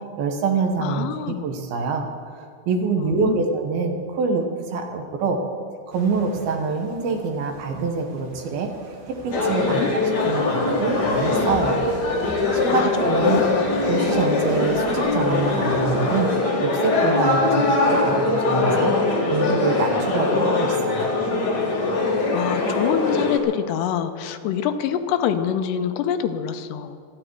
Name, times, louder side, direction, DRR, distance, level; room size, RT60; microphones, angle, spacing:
voice 1, 0.2-2.1 2.7-5.4 5.9-8.7 9.2-9.8 10.3-11.8 12.5-13.5 13.9-16.3 16.6-18.9 19.3-21.1, right 4 dB, 70° right, 4 dB, 2.9 m, -25 dB
voice 2, 0.8-1.4 2.9-3.5 9.7-9.9 12.7-12.9 13.2-13.5 22.3-27.0, left 9 dB, 85° left, 8 dB, 2.8 m, -25 dB
sound 1, 5.9-16.3, right 2 dB, 50° right, 2.9 m, -41 dB
sound 2, 9.3-23.4, left 3 dB, 55° left, 1.1 m, -22 dB
26.0 x 10.0 x 4.7 m, 2.2 s
omnidirectional pair, 4.9 m